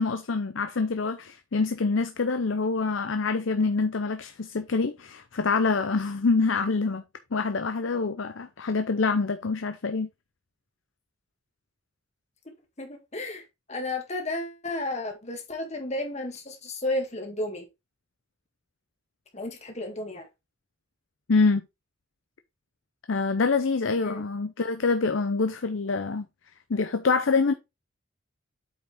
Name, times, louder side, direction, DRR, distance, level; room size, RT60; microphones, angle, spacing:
voice 1, 0.0-7.0 7.3-10.1 21.3-21.6 23.1-26.3 26.7-27.5, left 4 dB, 70° left, 0.7 m, -25 dB
voice 2, 12.5-13.4 13.7-17.7 19.3-20.3 24.0-24.2, left 2 dB, 35° left, 2.0 m, -33 dB
8.4 x 5.0 x 3.6 m
head